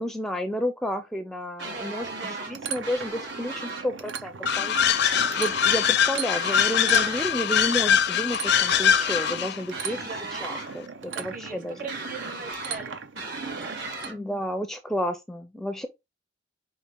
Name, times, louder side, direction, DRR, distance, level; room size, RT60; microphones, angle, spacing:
voice 1, 0.0-4.8 5.3-11.7 14.1-15.9, equal, 5° left, 0.4 m, -31 dB
voice 2, 1.6-2.7 6.8-7.3 9.9-10.5 11.1-13.9, right 4 dB, 50° right, 1.0 m, -41 dB
sound 1, 1.6-2.5 2.8-3.9 5.0-6.0 6.3-7.3 8.4-9.4 9.7-10.7 11.9-12.8 13.2-14.1, right 2 dB, 75° right, 1.9 m, -37 dB
sound 2, 2.0-14.1, right 6 dB, 90° right, 0.6 m, -39 dB
sound 3, 4.5-9.6, left 9 dB, 60° left, 0.5 m, -23 dB
5.2 x 2.8 x 3.5 m
head